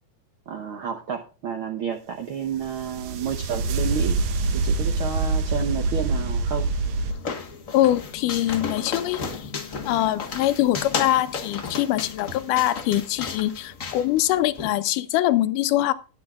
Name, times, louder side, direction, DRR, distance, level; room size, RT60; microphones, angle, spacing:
voice 1, 0.5-4.2 4.5-6.7, right 7 dB, 85° right, 4 dB, 1.1 m, -30 dB
sound 1, 2.5-7.1, right 3 dB, 65° right, 1.9 m, -25 dB
sound 2, 6.5-14.7, left 5 dB, 60° left, 0.8 m, -34 dB
voice 2, 7.7-9.5 9.8-15.9, left 14 dB, 80° left, 11 dB, 2.2 m, -23 dB
20.0 x 8.0 x 2.4 m, 0.35 s
omnidirectional pair, 3.8 m